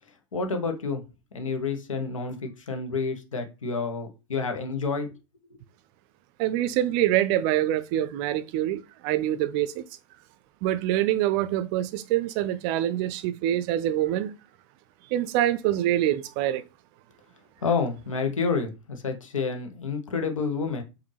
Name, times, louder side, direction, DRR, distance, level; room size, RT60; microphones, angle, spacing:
voice 1, 0.3-1.0 1.3-5.1 5.5-5.6 17.6-20.8, left 4 dB, 80° left, 0.9 m, -29 dB
voice 2, 6.4-9.8 10.6-14.3 15.1-16.6, right 13 dB, 50° right, 0.4 m, -25 dB
5.1 x 2.6 x 3.3 m
figure-of-eight pair, 90°, 16 cm